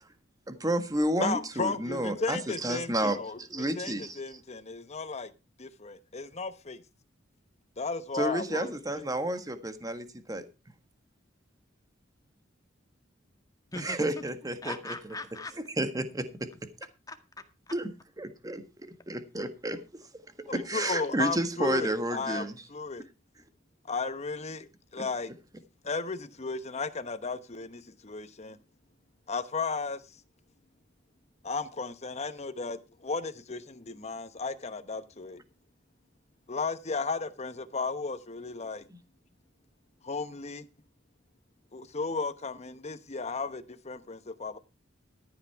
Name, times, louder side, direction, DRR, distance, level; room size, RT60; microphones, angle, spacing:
voice 1, 0.5-4.2 8.1-10.4 13.8-14.9 15.8-16.5 17.7-17.9 18.2-18.6 19.1-19.8 20.4-22.5 25.0-25.1, right 1 dB, 20° right, 1.6 m, -31 dB
voice 2, 1.2-5.3 5.6-6.8 7.8-9.0 20.5-23.1 23.9-25.3 25.8-28.6 29.3-30.0 31.4-35.4 36.5-38.9 40.0-40.7 41.7-44.6, left 4 dB, 35° left, 1.1 m, -35 dB
voice 3, 13.7-14.2 14.6-15.5 17.1-17.8, left 2 dB, 20° left, 1.8 m, -41 dB
14.0 x 8.6 x 4.6 m
head